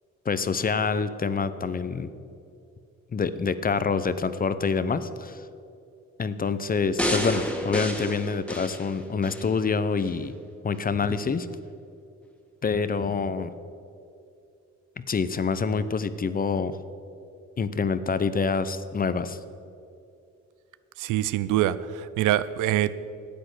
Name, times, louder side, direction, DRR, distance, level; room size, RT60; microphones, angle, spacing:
voice 1, 0.3-2.1 3.1-5.4 6.2-10.4 10.6-11.5 12.6-13.5 15.0-16.8 17.6-19.4, left 5 dB, 30° left, 13 dB, 0.7 m, -26 dB
sound 1, 7.0-9.5 10.0-10.1, equal, 5° left, 1.6 m, -30 dB
voice 2, 21.0-22.9, right 13 dB, 85° right, 15 dB, 0.5 m, -24 dB
10.0 x 8.8 x 8.1 m, 2.5 s
cardioid pair, 90°, 30 cm